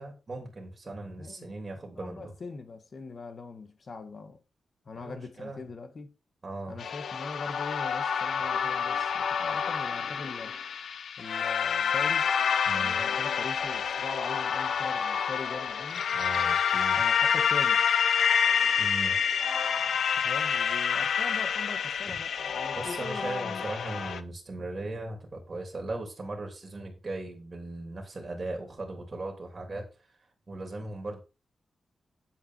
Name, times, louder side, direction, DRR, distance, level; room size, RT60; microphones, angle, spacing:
voice 1, 0.0-2.3 4.9-5.6 6.4-6.8 12.7-13.0 16.1-17.2 18.8-19.2 22.0-22.2 22.7-29.8 30.5-31.2, right 2 dB, 30° right, 3.1 m, -38 dB
voice 2, 1.0-1.6 1.9-4.4 4.8-6.2 6.7-10.6 11.2-12.3 12.7-16.1 17.0-17.8 20.1-23.7, left 4 dB, 40° left, 1.6 m, -41 dB
sound 1, 6.8-24.2, left 7 dB, 75° left, 0.7 m, -28 dB
9.5 x 7.7 x 4.5 m
wide cardioid pair, 170°, 0 cm